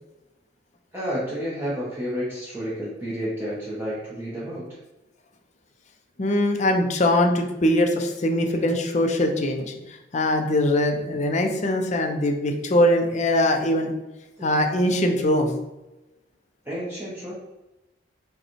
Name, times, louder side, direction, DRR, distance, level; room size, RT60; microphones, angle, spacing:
voice 1, 0.9-4.6 14.4-14.5 16.6-17.3, equal, 10° right, -8 dB, 0.7 m, -30 dB
voice 2, 6.2-13.9 14.4-15.6, left 1 dB, 40° left, 4 dB, 0.5 m, -22 dB
4.9 x 2.2 x 3.0 m, 1.0 s
head